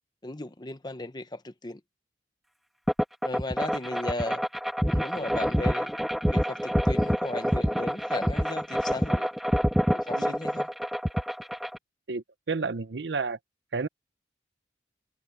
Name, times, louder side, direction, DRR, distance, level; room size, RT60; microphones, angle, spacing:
voice 1, 0.2-1.8 3.2-4.4 4.9-5.9 6.3-9.3 9.9-10.7, left 2 dB, 25° left, 0.9 m, -36 dB
sound 1, 2.9-11.8, equal, ahead, 1.5 m, -27 dB
voice 2, 12.1-13.4 13.7-13.9, right 4 dB, 75° right, 0.7 m, -31 dB
head